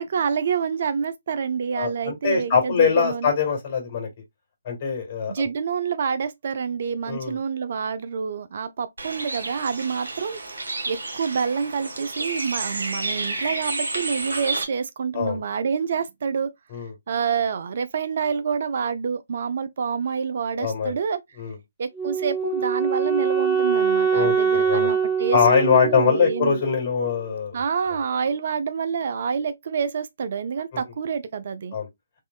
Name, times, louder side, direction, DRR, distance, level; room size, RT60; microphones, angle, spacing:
voice 1, 0.0-3.3 5.3-10.6 10.9-16.5 17.1-21.2 21.8-26.6 27.5-31.8, right 6 dB, 50° right, 0.4 m, -27 dB
voice 2, 1.8-4.1 4.7-5.5 7.1-7.4 15.1-15.4 16.7-16.9 20.6-21.0 21.4-21.6 24.1-24.9 25.3-27.6 31.7-31.9, left 6 dB, 35° left, 2.2 m, -22 dB
Bird, 9.0-14.6, right 2 dB, 70° right, 1.1 m, -30 dB
Wind instrument woodwind instrument, 22.0-27.0, right 6 dB, 5° left, 0.9 m, -24 dB
3.7 x 3.0 x 2.3 m
figure-of-eight pair, 140°, 0 cm